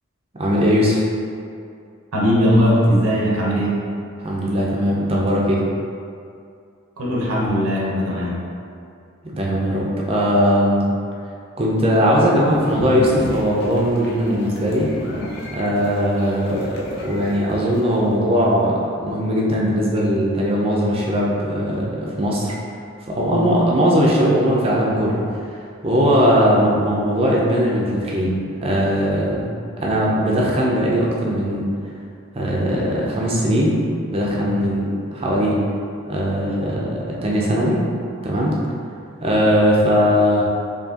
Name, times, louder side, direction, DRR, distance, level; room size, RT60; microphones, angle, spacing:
voice 1, 0.4-1.0 4.2-5.6 9.3-10.8 11.6-14.9 15.5-22.5 23.1-25.2 25.8-29.5 29.8-31.7 32.3-33.8 34.1-35.6 36.0-37.8 38.2-38.5 39.2-40.4, equal, 25° right, -4 dB, 0.5 m, -19 dB
voice 2, 2.1-3.8 7.0-8.4, equal, 90° right, -4 dB, 0.9 m, -19 dB
sound 1, 12.5-18.2, left 1 dB, 50° left, 0.6 m, -33 dB
4.6 x 2.9 x 2.8 m, 2.4 s
head